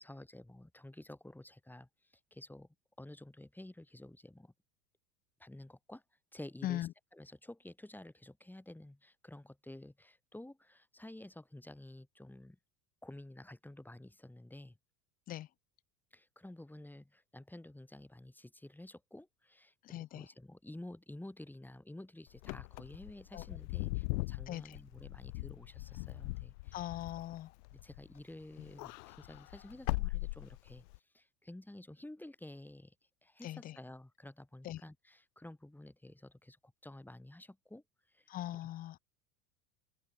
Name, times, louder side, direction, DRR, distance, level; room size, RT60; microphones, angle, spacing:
voice 1, 0.0-1.9 2.3-2.7 3.0-4.5 5.4-6.0 6.3-12.6 13.0-14.8 16.1-26.9 27.7-30.8 31.1-32.9 33.2-37.8 38.1-38.3, left 1 dB, 5° left, 5.5 m, -51 dB
voice 2, 19.8-20.2 23.3-23.4 24.5-24.8 26.7-27.5 33.4-33.8 34.6-34.8 38.3-39.0, left 13 dB, 20° left, 0.4 m, -40 dB
Wind / Car, 22.4-28.2 28.5-31.0, left 23 dB, 80° left, 1.1 m, -40 dB
supercardioid pair, 150°, 49 cm